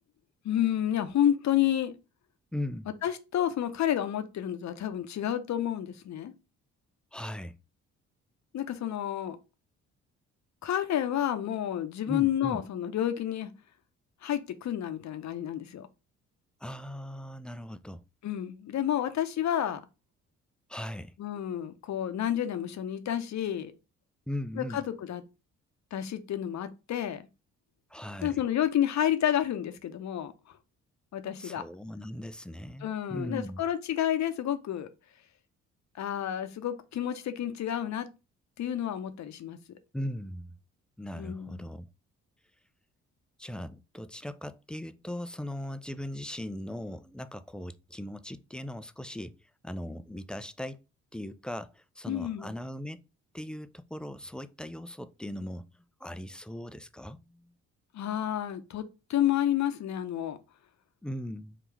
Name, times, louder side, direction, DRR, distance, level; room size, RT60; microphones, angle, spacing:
voice 1, 0.4-1.9 3.0-6.3 8.5-9.4 10.6-13.5 14.2-15.9 18.2-19.8 21.2-23.7 24.6-25.2 25.9-27.2 28.2-30.3 31.1-31.6 32.8-34.9 35.9-38.1 38.6-39.6 41.1-41.6 52.1-52.5 57.9-60.4, left 11 dB, 50° left, 0.7 m, -30 dB
voice 2, 2.5-2.9 7.1-7.5 12.1-12.6 16.6-18.0 20.7-21.1 24.3-24.8 27.9-28.4 31.4-33.6 39.9-40.5 41.0-41.9 43.4-49.4 49.6-50.8 51.1-53.0 53.3-55.7 56.0-57.5 61.0-61.6, left 1 dB, 5° left, 0.3 m, -39 dB
3.8 x 2.4 x 4.5 m
hypercardioid pair, 45°, 35 cm